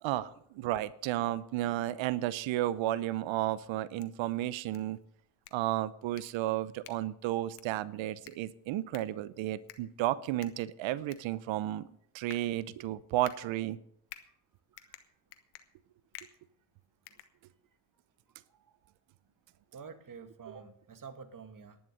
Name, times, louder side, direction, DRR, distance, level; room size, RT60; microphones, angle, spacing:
voice 1, 0.0-5.0 5.5-11.9 12.1-13.8, right 14 dB, 65° right, 18 dB, 0.9 m, -33 dB
sound 1, 3.8-17.9, left 14 dB, 90° left, 1.3 m, -55 dB
voice 2, 19.7-21.8, right 6 dB, 40° right, 9 dB, 2.0 m, -49 dB
11.0 x 11.0 x 6.6 m, 0.70 s
hypercardioid pair, 65°, 49 cm